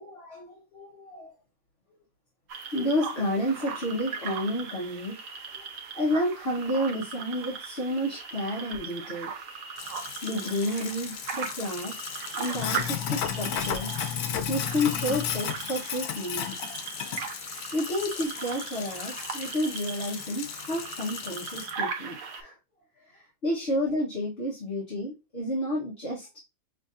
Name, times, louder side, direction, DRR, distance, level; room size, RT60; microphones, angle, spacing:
voice 1, 0.0-1.3 2.7-5.2 5.5-5.6 5.9-9.3 10.2-12.1 12.3-13.9 14.5-16.7 17.7-22.6 23.0-26.3, left 1 dB, 45° left, 1.3 m, -30 dB
sound 1, 2.5-22.4, right 6 dB, 60° right, 1.1 m, -39 dB
Sink (filling or washing), 9.8-21.7, left 8 dB, 90° left, 1.2 m, -34 dB
6.3 x 2.6 x 2.5 m
omnidirectional pair, 1.6 m